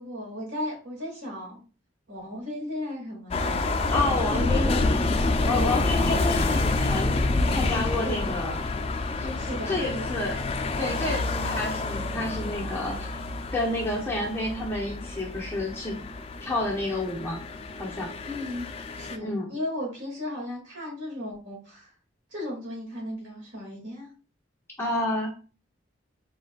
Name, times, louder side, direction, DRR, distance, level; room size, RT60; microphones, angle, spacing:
voice 1, 0.0-1.6 2.1-3.6 4.2-4.9 5.5-5.9 8.0-8.4 9.4-10.1 18.2-21.9 22.3-24.1, left 1 dB, 70° right, -2 dB, 2.2 m, -35 dB
sound 1, 3.3-19.2, left 2 dB, 30° left, 0.4 m, -28 dB
voice 2, 3.9-4.8 5.4-8.6 9.2-9.4 9.7-10.4 10.8-13.2 13.5-16.0 16.4-17.4 17.8-18.1 19.2-19.5 24.8-25.3, left 2 dB, 10° left, -2 dB, 0.9 m, -30 dB
4.3 x 4.0 x 2.3 m, 0.36 s
head